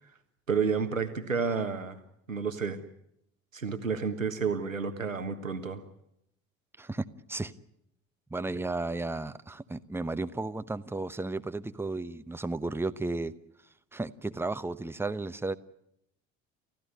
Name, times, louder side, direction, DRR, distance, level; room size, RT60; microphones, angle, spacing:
voice 1, 0.5-2.0 2.3-2.8 3.5-5.8, right 5 dB, 85° right, 8 dB, 1.5 m, -30 dB
voice 2, 6.8-7.5 8.3-13.3 13.9-15.6, right 2 dB, 5° right, 12 dB, 1.0 m, -34 dB
29.5 x 15.5 x 9.5 m, 0.80 s
figure-of-eight pair, 60°, 38 cm